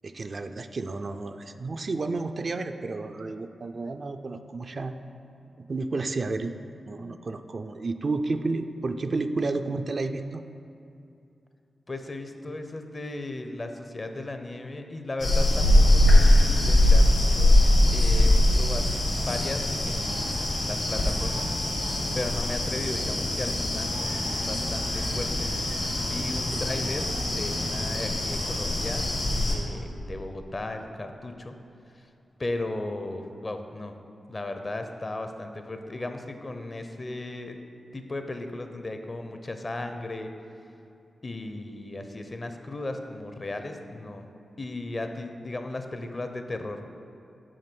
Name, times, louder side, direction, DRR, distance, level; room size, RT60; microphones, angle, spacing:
voice 1, 0.0-4.9 5.6-6.5 6.9-10.4 15.6-15.7 24.3-24.4 26.5-26.6, right 3 dB, 55° right, 7 dB, 0.3 m, -31 dB
voice 2, 11.9-17.6 17.9-18.8 19.2-21.5 22.1-25.6 26.0-29.1 29.5-31.5 32.4-33.9 34.3-37.6 37.9-40.3 41.2-44.2 44.6-46.8, left 2 dB, 40° left, 6 dB, 0.6 m, -36 dB
sound 1, 15.2-29.5, left 1 dB, 75° left, 1.6 m, -22 dB
6.4 x 4.2 x 6.0 m, 2.7 s
cardioid pair, 50°, 0 cm